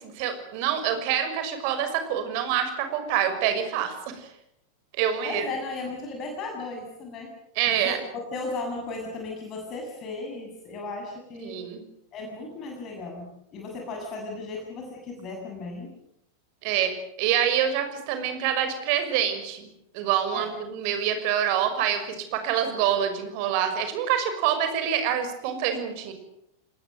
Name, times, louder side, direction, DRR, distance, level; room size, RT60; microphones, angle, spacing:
voice 1, 0.1-4.3 5.0-5.4 7.6-8.0 11.4-11.8 16.6-16.9 17.2-19.7 19.9-26.1, right 9 dB, 45° right, 8 dB, 5.9 m, -26 dB
voice 2, 5.2-7.3 7.7-8.0 8.3-11.6 12.1-15.9 20.3-20.5, left 3 dB, 30° left, 1 dB, 7.4 m, -35 dB
30.0 x 20.0 x 7.8 m, 0.75 s
figure-of-eight pair, 90°, 0 cm